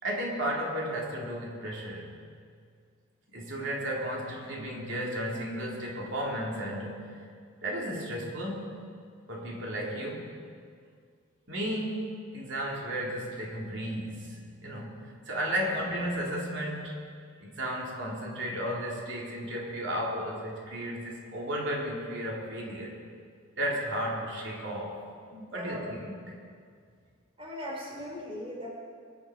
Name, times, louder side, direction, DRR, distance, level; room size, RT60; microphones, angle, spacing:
voice 1, 0.0-2.1 3.3-7.2 7.6-8.8 9.3-10.3 11.5-16.9 17.4-23.0 23.5-25.0 25.5-26.1, equal, 65° right, -3 dB, 3.3 m, -34 dB
voice 2, 25.3-25.9 27.4-28.7, equal, 25° right, -3 dB, 4.4 m, -39 dB
24.5 x 11.0 x 5.0 m, 2.1 s
head